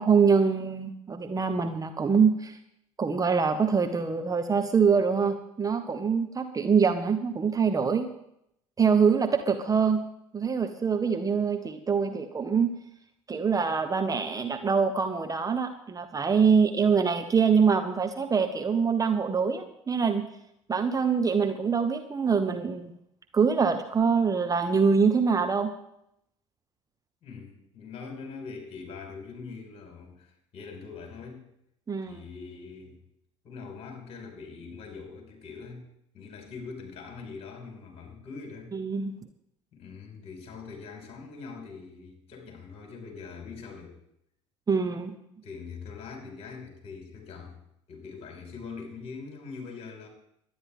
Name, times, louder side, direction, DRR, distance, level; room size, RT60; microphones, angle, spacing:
voice 1, 0.0-2.6 3.0-8.1 8.8-10.0 10.3-12.7 13.3-20.3 20.7-22.9 23.3-25.7 31.9-32.2 38.7-39.2 44.7-45.1, right 5 dB, 20° right, 6 dB, 1.1 m, -24 dB
voice 2, 27.2-31.5 32.1-33.0 33.4-35.9 36.1-38.7 39.7-44.0 45.4-47.6 47.9-50.1, left 5 dB, 40° left, 1 dB, 5.3 m, -43 dB
22.5 x 10.0 x 3.7 m, 0.77 s
figure-of-eight pair, 65°, 16 cm